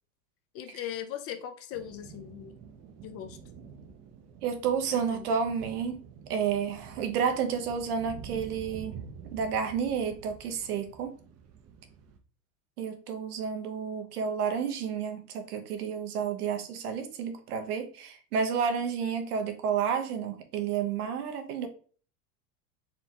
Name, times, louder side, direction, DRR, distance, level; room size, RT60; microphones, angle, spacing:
voice 1, 0.5-2.6 3.0-3.4 4.9-5.3, left 10 dB, 35° left, 8 dB, 0.4 m, -39 dB
sound 1, 1.7-12.2, right 6 dB, 35° right, 0.6 m, -48 dB
voice 2, 4.4-6.0 6.3-9.0 9.3-11.1 12.8-21.7, right 7 dB, 80° right, 6 dB, 1.0 m, -31 dB
4.2 x 3.3 x 2.8 m, 0.41 s
hypercardioid pair, 105°, 45 cm